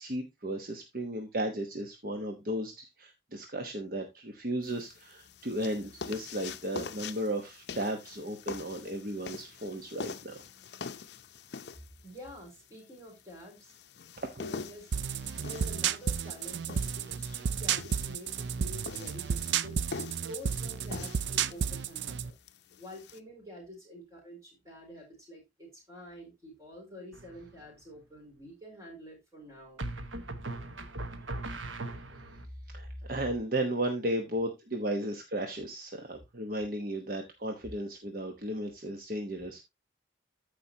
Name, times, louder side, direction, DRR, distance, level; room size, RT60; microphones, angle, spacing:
voice 1, 0.0-10.4 14.2-14.3 32.7-39.6, right 1 dB, 50° right, 4 dB, 1.1 m, -35 dB
sound 1, 4.6-23.2, left 5 dB, 60° left, 0.6 m, -45 dB
voice 2, 12.0-13.8 14.3-15.0 15.4-19.8 20.2-22.4 22.7-29.8 32.2-32.9, equal, 15° right, -1 dB, 4.4 m, -48 dB
sound 2, 14.9-22.3, right 7 dB, 70° right, 0.5 m, -32 dB
sound 3, 27.1-27.7 29.8-32.5, right 2 dB, 85° right, 1.2 m, -39 dB
14.0 x 5.1 x 2.8 m, 0.21 s
head